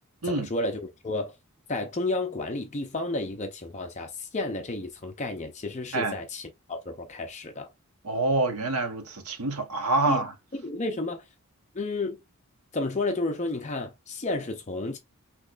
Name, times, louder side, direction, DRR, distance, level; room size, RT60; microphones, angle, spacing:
voice 1, 0.2-1.3 1.7-7.7 10.0-10.2 10.6-11.2 11.7-12.2 12.7-15.0, left 2 dB, 30° left, 0.5 m, -31 dB
voice 2, 8.0-10.3, right 2 dB, 85° right, 1.1 m, -26 dB
6.0 x 3.0 x 2.5 m
head